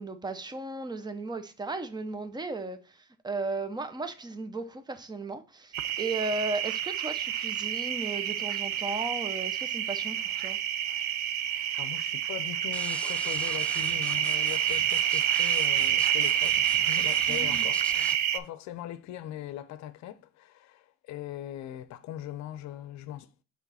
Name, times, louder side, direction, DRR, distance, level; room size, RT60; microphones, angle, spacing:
voice 1, 0.0-10.6 17.3-17.7, right 3 dB, 15° right, 0.8 m, -35 dB
sound 1, 5.7-18.4, right 10 dB, 70° right, 0.6 m, -28 dB
voice 2, 11.4-17.8 18.3-23.3, left 12 dB, 70° left, 0.7 m, -40 dB
sound 2, 12.7-18.2, left 2 dB, 5° left, 0.3 m, -42 dB
6.0 x 3.8 x 4.1 m
cardioid pair, 105°, 29 cm